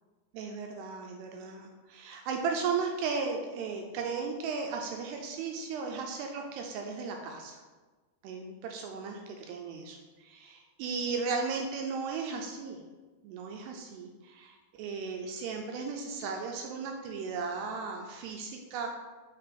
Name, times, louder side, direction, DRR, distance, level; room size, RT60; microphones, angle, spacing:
voice 1, 0.3-7.6 8.2-12.8 13.2-18.9, right 5 dB, 85° right, 2 dB, 2.4 m, -36 dB
6.3 x 3.8 x 5.7 m, 1.3 s
omnidirectional pair, 5.2 m